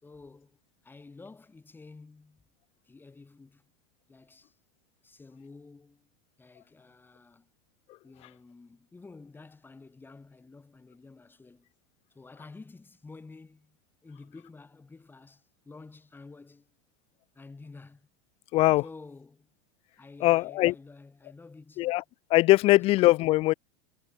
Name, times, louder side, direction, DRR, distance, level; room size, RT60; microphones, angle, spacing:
voice 1, 0.0-2.5 2.8-3.6 4.1-4.6 5.0-6.1 6.4-7.5 8.0-11.7 12.1-16.7 17.3-18.1 18.8-19.5 19.9-22.0 22.7-22.9, left 3 dB, 15° left, 5.7 m, -50 dB
voice 2, 18.5-18.8 20.2-20.7 21.8-22.0 22.3-23.5, left 18 dB, 40° left, 0.3 m, -21 dB
hypercardioid pair, 105°, 15 cm